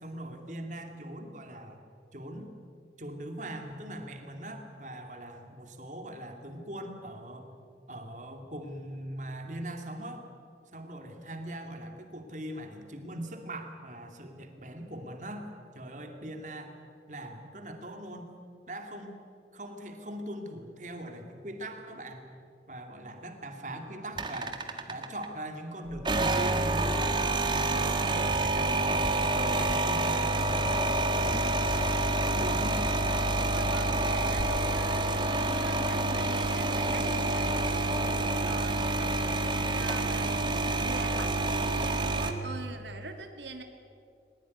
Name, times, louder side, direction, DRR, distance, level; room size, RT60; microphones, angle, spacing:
voice 1, 0.0-1.8 2.1-2.5 3.0-7.5 7.9-10.2 10.7-15.5 15.7-16.7 17.1-18.3 18.7-19.2 19.5-22.3 22.7-24.6 24.9-27.1 27.5-29.1 29.4-31.6 32.3-32.8, right 1 dB, 45° right, 4 dB, 2.6 m, -41 dB
sound 1, 24.1-25.3 25.9-42.3, right 2 dB, 25° right, 1.6 m, -28 dB
voice 2, 33.5-39.1 39.7-43.6, right 3 dB, 85° right, 5 dB, 2.1 m, -43 dB
21.0 x 20.5 x 9.7 m, 2.3 s
head